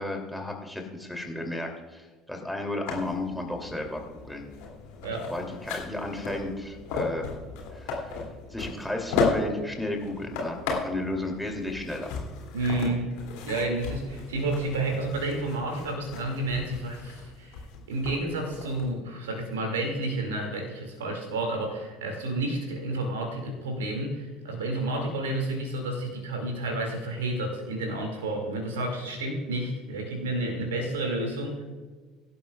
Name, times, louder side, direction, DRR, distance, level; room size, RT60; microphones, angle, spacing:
voice 1, 0.0-4.4 5.3-7.3 7.7-8.2 8.5-12.1, left 1 dB, ahead, 1 dB, 2.8 m, -33 dB
sound 1, 2.9-18.9, left 4 dB, 60° left, 2.6 m, -35 dB
voice 2, 12.5-13.1 13.4-17.6 17.9-31.6, right 2 dB, 70° right, 2 dB, 2.2 m, -30 dB
23.0 x 12.0 x 2.4 m, 1.4 s
figure-of-eight pair, 60°, 0 cm